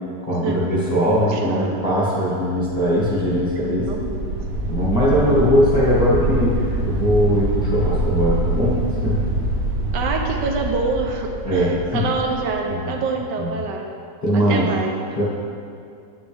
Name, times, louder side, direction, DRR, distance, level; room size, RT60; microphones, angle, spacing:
voice 1, 0.2-3.8 4.7-9.2 11.4-12.1 12.7-13.0 13.4-13.5 14.2-14.7 15.2-15.3, equal, 20° left, -8 dB, 1.4 m, -20 dB
voice 2, 1.3-1.6 3.5-4.3 9.9-13.9 14.3-14.9, right 4 dB, 75° right, 2 dB, 1.3 m, -26 dB
sound 1, 2.6-12.5, right 2 dB, 55° right, 1.2 m, -25 dB
9.1 x 6.1 x 3.4 m, 2.5 s
omnidirectional pair, 2.0 m